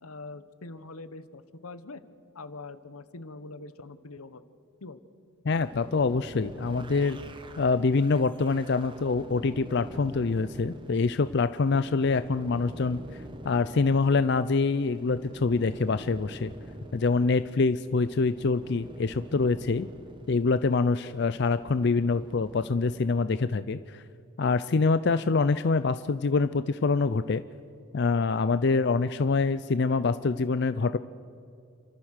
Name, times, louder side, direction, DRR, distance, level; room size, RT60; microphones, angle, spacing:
voice 1, 0.0-2.0 2.3-4.4 4.8-5.0, left 3 dB, 85° left, 13 dB, 1.0 m, -43 dB
voice 2, 5.4-7.2 7.6-13.0 13.4-16.5 16.9-19.9 20.3-24.0 24.4-27.4 27.9-31.0, left 4 dB, 50° left, 13 dB, 0.4 m, -25 dB
sound 1, 5.5-23.2, right 1 dB, 20° right, 1.0 m, -46 dB
29.5 x 13.5 x 6.5 m, 2.4 s
head